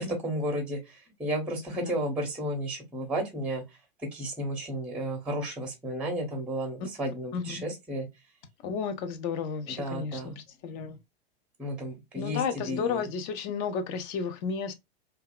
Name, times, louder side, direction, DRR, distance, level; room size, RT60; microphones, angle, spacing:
voice 1, 0.0-3.6 4.1-8.1 9.8-10.4 11.6-13.0, right 1 dB, 5° right, 0.7 m, -33 dB
voice 2, 7.3-7.6 8.6-11.0 12.1-14.7, left 6 dB, 35° left, 0.5 m, -33 dB
2.7 x 2.3 x 2.2 m
hypercardioid pair, 100°, 32 cm